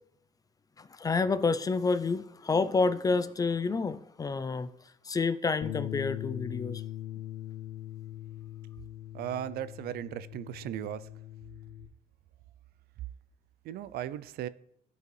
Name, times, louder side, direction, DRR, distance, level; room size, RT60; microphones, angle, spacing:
voice 1, 0.8-4.7 5.0-6.8, left 4 dB, 20° left, 0.3 m, -29 dB
Bass guitar, 5.6-11.9, left 13 dB, 60° left, 0.7 m, -41 dB
voice 2, 9.1-11.1 13.6-14.5, right 11 dB, 65° right, 0.4 m, -36 dB
13.5 x 4.6 x 3.2 m
cardioid pair, 110°, 17 cm